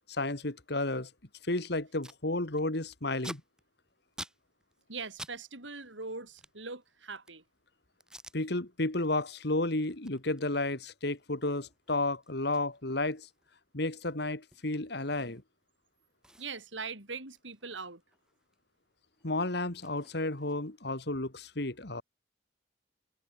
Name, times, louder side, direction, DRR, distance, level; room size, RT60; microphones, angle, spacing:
voice 1, 0.1-1.1 1.4-3.4 8.3-13.3 13.7-15.4 19.2-22.0, left 2 dB, 60° left, 2.4 m, -32 dB
Packing tape duct tape, 2.0-2.2 2.5-5.4 5.6-7.5 8.0-8.4 8.8-9.1 9.4-15.6 15.9-16.0 16.2-18.6 18.9-20.8, right 1 dB, 5° right, 2.7 m, -51 dB
voice 2, 4.9-7.4 16.4-18.0, right 4 dB, 90° right, 7.6 m, -41 dB
head